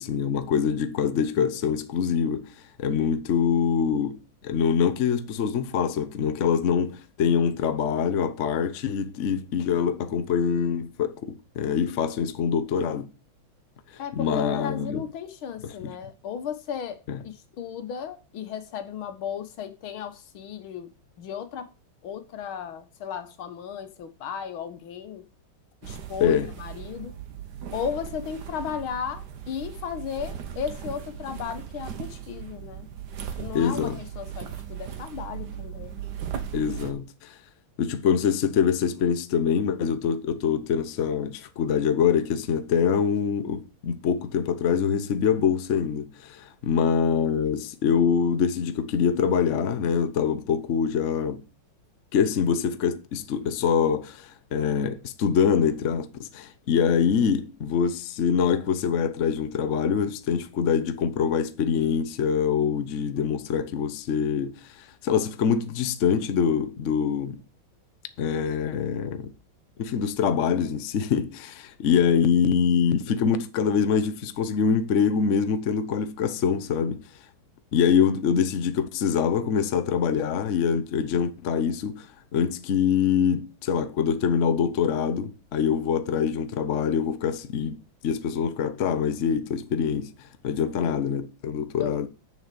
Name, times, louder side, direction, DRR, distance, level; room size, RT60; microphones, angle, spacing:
voice 1, 0.0-4.2 4.4-13.1 14.1-15.0 15.6-15.9 17.1-17.2 26.2-26.5 33.5-34.0 36.5-37.4 37.8-51.4 52.1-67.4 68.2-69.3 69.8-77.0 77.7-82.1 82.3-92.1, left 7 dB, 55° left, 0.8 m, -24 dB
voice 2, 14.0-20.9 21.2-21.7 22.0-25.3 25.8-27.1 27.7-32.9 33.4-36.0 90.7-91.0 91.8-92.0, left 8 dB, 75° left, 1.9 m, -35 dB
sound 1, 25.8-36.9, right 9 dB, 55° right, 1.6 m, -38 dB
7.1 x 6.6 x 6.7 m
omnidirectional pair, 2.3 m